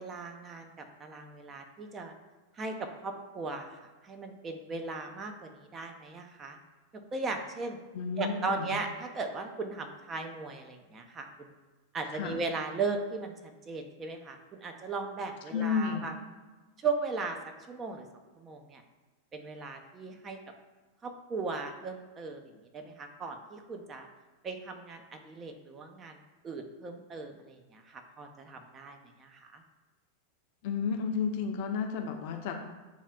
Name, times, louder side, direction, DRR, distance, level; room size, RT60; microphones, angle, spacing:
voice 1, 0.0-2.1 2.5-6.6 7.1-7.8 8.2-11.6 11.9-16.1 16.8-17.4 17.7-18.1 18.4-18.8 19.3-20.4 21.0-24.1 24.4-29.6, right 4 dB, 25° right, 4 dB, 0.4 m, -37 dB
voice 2, 7.9-8.8 12.1-12.4 15.5-16.1 30.6-32.5, left 6 dB, 50° left, 4 dB, 0.5 m, -32 dB
6.9 x 2.3 x 2.3 m, 1.2 s
figure-of-eight pair, 90°, 0 cm